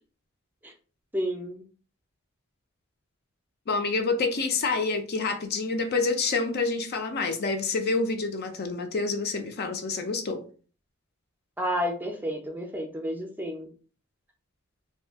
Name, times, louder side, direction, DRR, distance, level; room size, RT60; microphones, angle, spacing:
voice 1, 1.1-1.6 11.6-13.7, equal, 10° right, 3 dB, 0.5 m, -31 dB
voice 2, 3.7-10.5, left 3 dB, 50° left, 6 dB, 0.4 m, -27 dB
2.6 x 2.3 x 3.4 m, 0.39 s
head